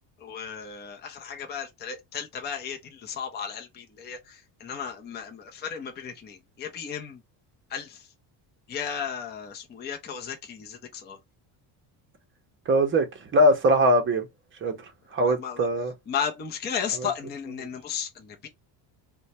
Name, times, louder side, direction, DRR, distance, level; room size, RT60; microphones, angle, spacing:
voice 1, 0.2-7.2 7.7-8.1 8.7-11.2 15.2-15.7 16.1-18.5, left 7 dB, 25° left, 0.5 m, -34 dB
voice 2, 12.7-13.1 13.3-14.3 14.6-14.7 15.1-15.9, equal, 25° right, 0.7 m, -21 dB
3.0 x 2.2 x 4.1 m
cardioid pair, 155°, 44 cm